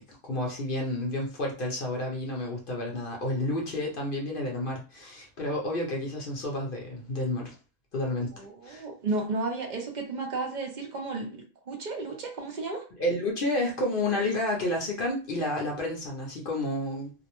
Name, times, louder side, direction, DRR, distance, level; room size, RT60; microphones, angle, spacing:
voice 1, 0.1-7.6 7.9-8.9 13.0-17.1, left 1 dB, 50° left, 0.7 m, -30 dB
voice 2, 8.3-12.8, right 3 dB, 50° right, 0.6 m, -33 dB
2.6 x 2.0 x 2.9 m
omnidirectional pair, 1.4 m